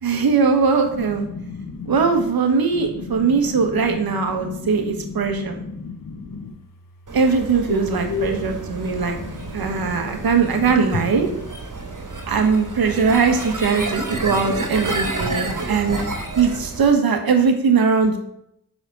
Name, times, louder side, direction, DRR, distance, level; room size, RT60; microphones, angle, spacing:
voice 1, 0.0-1.3 1.9-5.6 7.1-9.2 9.5-11.3 12.3-16.0 16.4-18.2, right 5 dB, 80° right, 5 dB, 1.3 m, -20 dB
voice 2, 0.9-2.2 2.7-6.5 7.7-10.1 10.5-11.4, left 4 dB, 65° left, 5 dB, 1.4 m, -33 dB
sound 1, 7.1-16.9, right 3 dB, 60° right, 2.9 m, -30 dB
5.9 x 5.0 x 6.7 m, 0.76 s
cardioid pair, 65°, 36 cm